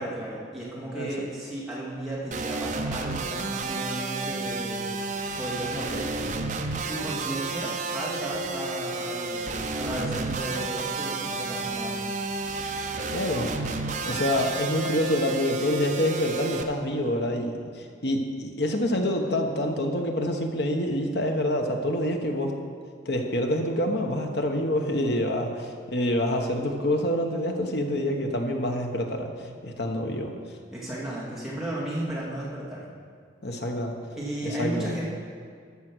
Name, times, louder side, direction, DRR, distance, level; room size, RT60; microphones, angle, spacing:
voice 1, 0.0-4.8 5.4-6.1 6.9-12.0 30.7-32.9 34.2-35.1, right 1 dB, ahead, -8 dB, 2.6 m, -34 dB
voice 2, 0.9-1.3 13.1-13.5 14.0-22.5 23.0-30.3 33.4-33.9 34.4-34.9, left 1 dB, 60° left, 3 dB, 1.1 m, -27 dB
sound 1, 2.3-16.6, right 3 dB, 40° right, 0.7 m, -31 dB
14.0 x 6.3 x 6.3 m, 2.1 s
head